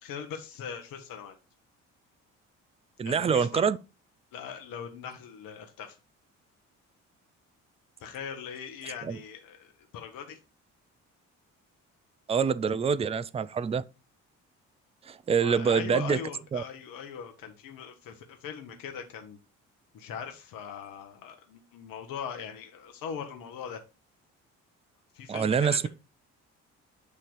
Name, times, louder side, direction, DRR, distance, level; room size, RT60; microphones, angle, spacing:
voice 1, 0.0-1.4 3.0-3.6 4.3-6.0 8.0-10.4 15.3-19.4 19.9-23.8 25.1-25.9, left 7 dB, 65° left, 1.1 m, -40 dB
voice 2, 3.0-3.8 9.0-9.2 12.3-13.8 15.0-16.2 16.5-16.6 25.3-25.9, right 6 dB, 15° right, 0.4 m, -26 dB
8.3 x 2.9 x 5.0 m
hypercardioid pair, 55°, 37 cm